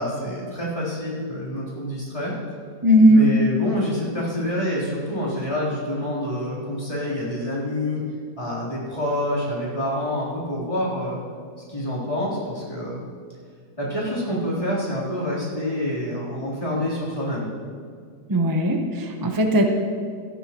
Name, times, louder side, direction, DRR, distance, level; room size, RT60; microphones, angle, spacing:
voice 1, 0.0-2.3 3.1-8.0 8.4-11.2 11.7-13.0 13.8-17.5, equal, 20° left, -8 dB, 3.5 m, -27 dB
voice 2, 2.8-3.2 18.3-19.6, equal, 20° right, 3 dB, 0.5 m, -17 dB
17.0 x 12.5 x 3.0 m, 2.1 s
omnidirectional pair, 1.8 m